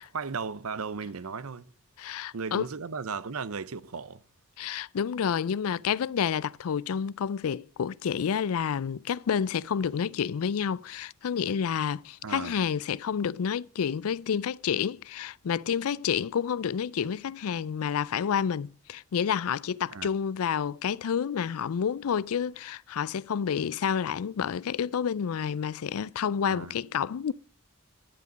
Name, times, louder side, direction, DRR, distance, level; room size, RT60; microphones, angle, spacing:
voice 1, 0.0-1.6 2.3-4.2 12.2-12.6 19.9-20.1 26.5-26.8, right 5 dB, 75° right, 0.7 m, -36 dB
voice 2, 2.0-2.6 4.6-27.3, left 7 dB, 75° left, 0.4 m, -29 dB
11.5 x 8.3 x 5.2 m
head